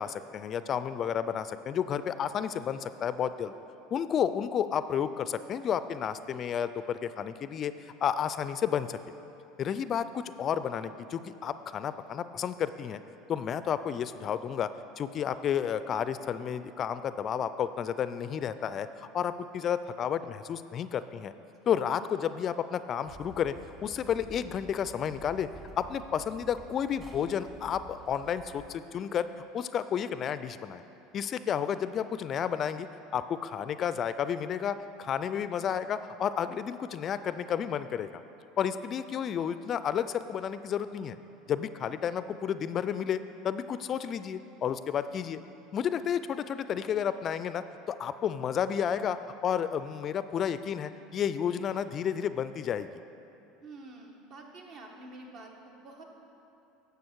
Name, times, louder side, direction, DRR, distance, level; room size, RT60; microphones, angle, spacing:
voice 1, 0.0-3.5 3.9-9.0 9.6-13.0 13.3-14.7 15.0-21.3 21.7-23.5 23.8-25.5 25.8-29.3 29.5-30.8 31.1-32.9 33.1-38.2 38.6-41.2 41.5-43.2 43.4-45.4 45.7-52.9, left 8 dB, 40° left, 13 dB, 0.3 m, -31 dB
sound 1, 23.1-28.8, right 2 dB, 20° right, 1.5 m, -50 dB
voice 2, 53.6-56.0, right 2 dB, 55° right, 1 dB, 1.5 m, -48 dB
10.5 x 6.8 x 4.6 m, 3.0 s
hypercardioid pair, 80°, 0 cm